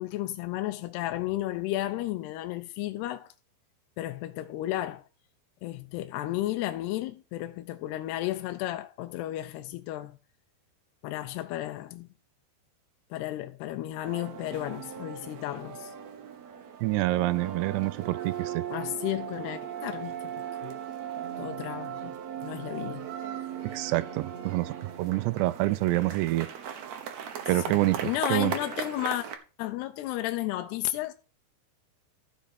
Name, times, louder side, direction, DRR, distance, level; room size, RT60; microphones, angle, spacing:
voice 1, 0.0-3.3 4.0-5.0 5.6-10.2 11.0-12.1 13.1-15.9 18.7-20.3 20.6-20.7 21.4-22.1 22.4-23.1 27.7-29.3 29.6-31.1, left 15 dB, 80° left, 2.7 m, -33 dB
sound 1, 14.1-29.3, right 9 dB, 75° right, 1.6 m, -38 dB
voice 2, 16.8-18.6 23.7-26.5 27.5-28.5, right 17 dB, 90° right, 2.8 m, -27 dB
14.0 x 5.9 x 4.3 m
omnidirectional pair, 4.8 m